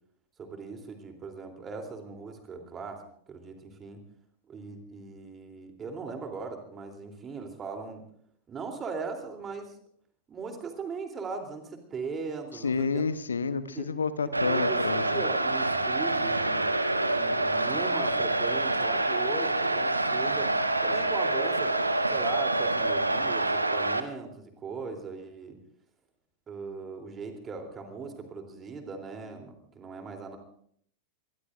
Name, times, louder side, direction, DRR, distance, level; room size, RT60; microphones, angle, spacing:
voice 1, 0.4-3.0 3.3-4.0 4.5-8.0 8.5-9.8 10.3-13.1 13.7-13.9 14.2-16.7 17.0-20.5 20.8-25.6 26.5-30.4, right 4 dB, 20° right, 4 dB, 3.2 m, -39 dB
voice 2, 12.6-15.2, left 5 dB, 75° left, 14 dB, 1.0 m, -30 dB
sound 1, 14.3-24.0, right 2 dB, 85° right, 1.1 m, -27 dB
25.0 x 20.0 x 2.6 m, 0.64 s
figure-of-eight pair, 90°, 0 cm